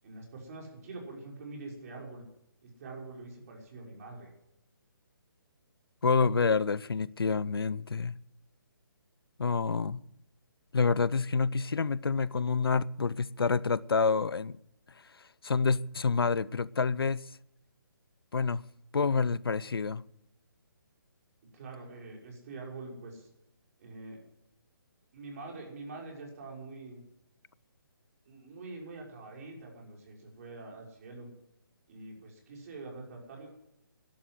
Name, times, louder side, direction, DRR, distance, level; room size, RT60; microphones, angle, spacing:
voice 1, 0.0-2.2 2.6-4.3 21.5-23.3 23.8-24.2 25.1-27.0 28.2-31.3 31.9-33.5, right 3 dB, 40° right, 5.9 m, -45 dB
voice 2, 6.0-8.2 9.4-10.0 10.7-14.6 15.4-17.2 18.3-18.6 18.9-20.0, left 5 dB, 85° left, 0.6 m, -28 dB
14.0 x 12.0 x 7.8 m
hypercardioid pair, 155°, 12 cm